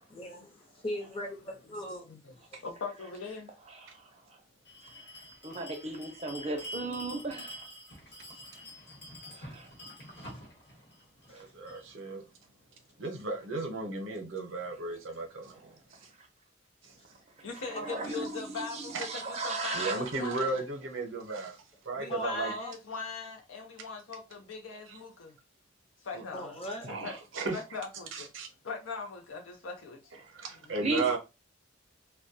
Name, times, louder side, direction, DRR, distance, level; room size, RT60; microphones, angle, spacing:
voice 1, 0.1-2.1 2.5-2.6 8.3-8.4 10.2-10.3 11.3-11.4 17.7-17.9 22.1-22.7 26.3-26.9, equal, 30° left, 0.6 m, -39 dB
voice 2, 2.6-3.5 17.4-20.5 22.0-25.4 26.0-26.5 26.9-27.2 27.5-28.3 28.6-30.2 30.5-30.7, left 5 dB, 80° left, 0.5 m, -40 dB
voice 3, 3.7-4.4 4.9-7.7 9.3-9.7 11.3-11.5 15.5-15.7 16.2-16.3 17.4-20.4 30.8-31.2, right 2 dB, 30° right, 0.5 m, -37 dB
Bell, 4.6-11.9, equal, 55° left, 1.0 m, -47 dB
voice 4, 11.3-12.2 13.0-15.7 15.9-16.0 16.8-17.0 18.9-19.0 19.7-21.6 21.8-22.5 24.9-25.0 26.8-27.6 28.1-28.5 30.3-31.2, right 3 dB, 75° right, 0.7 m, -35 dB
2.2 x 2.2 x 2.6 m
head